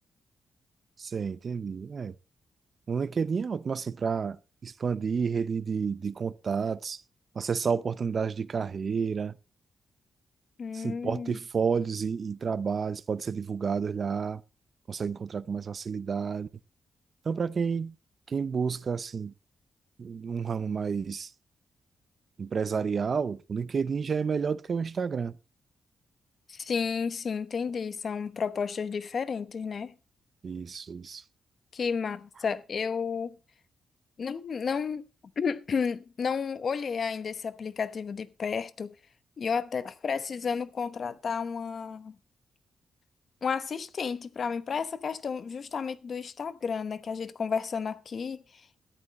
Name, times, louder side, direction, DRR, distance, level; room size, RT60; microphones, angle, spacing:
voice 1, 1.0-2.1 2.9-7.0 7.3-9.3 10.7-14.4 14.9-16.5 17.2-17.9 18.3-19.3 20.0-21.3 22.4-25.4 30.4-31.2, right 6 dB, 45° right, 0.6 m, -30 dB
voice 2, 10.6-11.4 26.5-29.9 31.7-33.4 34.2-35.0 35.4-38.9 39.4-42.1 43.4-48.4, left 6 dB, 50° left, 1.0 m, -32 dB
13.5 x 10.5 x 4.1 m
cardioid pair, 105°, 0 cm